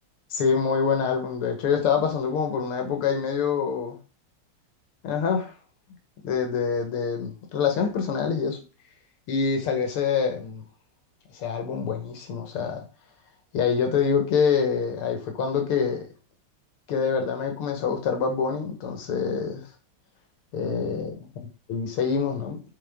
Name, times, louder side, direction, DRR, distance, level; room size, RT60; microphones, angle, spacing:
voice 1, 0.3-4.0 5.0-5.5 6.2-8.6 9.3-10.6 11.3-12.8 13.5-16.1 16.9-19.6 20.5-21.3 21.7-22.6, left 6 dB, 80° left, 2.1 m, -25 dB
7.7 x 3.9 x 3.5 m
omnidirectional pair, 2.4 m